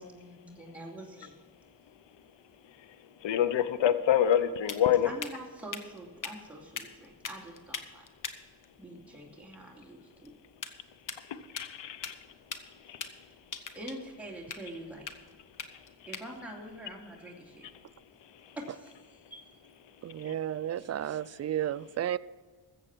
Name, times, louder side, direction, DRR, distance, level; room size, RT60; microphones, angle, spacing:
voice 1, 0.0-1.3 5.1-8.0 8.8-10.3 12.9-13.1 13.6-15.1 16.1-17.7 18.6-19.0 19.3-19.5, right 1 dB, 5° right, 2.6 m, -45 dB
voice 2, 3.2-5.1 11.3-12.2 12.9-13.1 20.2-20.3, left 10 dB, 75° left, 0.9 m, -27 dB
sound 1, 3.8-18.1, left 6 dB, 45° left, 1.2 m, -45 dB
voice 3, 20.0-22.2, right 11 dB, 40° right, 0.4 m, -32 dB
14.5 x 7.5 x 6.0 m
cardioid pair, 75°, 44 cm